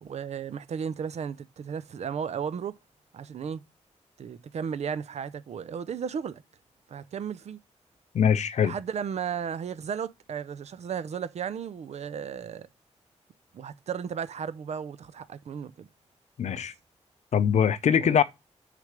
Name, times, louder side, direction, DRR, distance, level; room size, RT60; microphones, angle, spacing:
voice 1, 0.0-2.8 3.1-3.6 4.2-6.4 6.9-7.6 8.6-12.7 13.5-15.9 16.5-16.7 18.0-18.2, right 7 dB, 70° right, 0.5 m, -34 dB
voice 2, 8.1-8.7 16.4-16.7 17.3-18.2, left 8 dB, 75° left, 0.6 m, -22 dB
6.5 x 3.4 x 4.9 m
wide cardioid pair, 130°, 12 cm